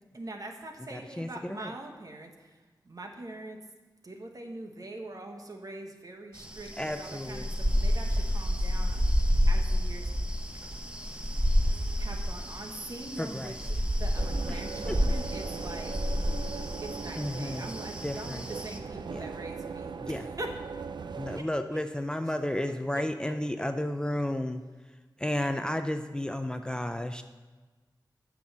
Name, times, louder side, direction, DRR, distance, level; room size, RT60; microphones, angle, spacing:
voice 1, 0.1-3.7 4.0-10.1 10.5-10.7 11.4-11.7 12.0-16.1 16.8-20.6 21.1-21.8 22.2-22.3 22.7-23.7, right 2 dB, 50° right, 3 dB, 1.3 m, -43 dB
voice 2, 0.9-1.7 6.8-7.5 13.2-13.5 14.5-14.6 17.2-17.7 18.0-18.5 19.1-19.3 20.0-20.3 21.2-24.6 25.2-27.2, left 1 dB, 10° left, 8 dB, 0.4 m, -32 dB
sound 1, 6.3-18.8, equal, 15° right, 0.9 m, -29 dB
sound 2, 14.2-21.4, right 5 dB, 70° right, 0.4 m, -39 dB
9.1 x 6.2 x 7.3 m, 1.3 s
wide cardioid pair, 95°, 8 cm